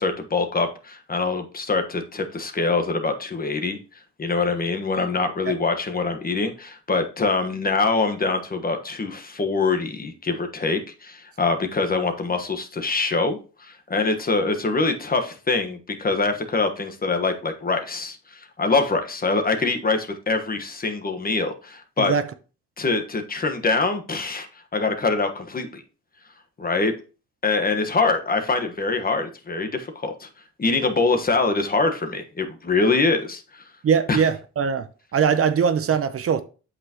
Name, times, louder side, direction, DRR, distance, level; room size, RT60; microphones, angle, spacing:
voice 1, 0.0-3.8 4.2-22.1 22.8-24.5 24.7-25.8 26.6-26.9 27.4-30.3 30.6-33.6 34.1-34.2, left 3 dB, 30° left, 1.3 m, -24 dB
voice 2, 33.8-34.9 35.1-36.4, right 6 dB, 50° right, 0.8 m, -21 dB
8.2 x 5.9 x 2.9 m
cardioid pair, 90°, 30 cm